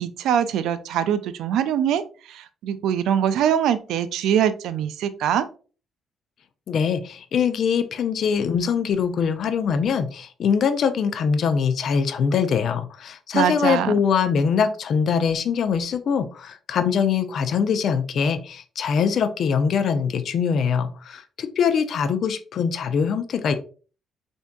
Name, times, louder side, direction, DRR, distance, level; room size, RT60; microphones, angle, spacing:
voice 1, 0.0-5.5 13.3-13.9, right 9 dB, 85° right, 13 dB, 0.3 m, -23 dB
voice 2, 6.7-23.5, left 6 dB, 65° left, 10 dB, 0.4 m, -23 dB
4.4 x 2.6 x 2.2 m, 0.38 s
cardioid pair, 90°, 0 cm